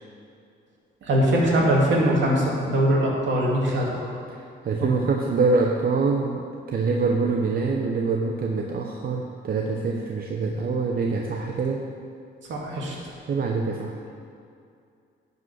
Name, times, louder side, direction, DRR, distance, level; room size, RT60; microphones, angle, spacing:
voice 1, 1.0-4.1 12.5-12.9, right 1 dB, 70° right, -3 dB, 2.4 m, -22 dB
voice 2, 4.3-11.9 13.3-13.9, right 4 dB, 50° right, 1 dB, 0.8 m, -25 dB
10.5 x 5.2 x 6.3 m, 2.4 s
cardioid pair, 90°, 20 cm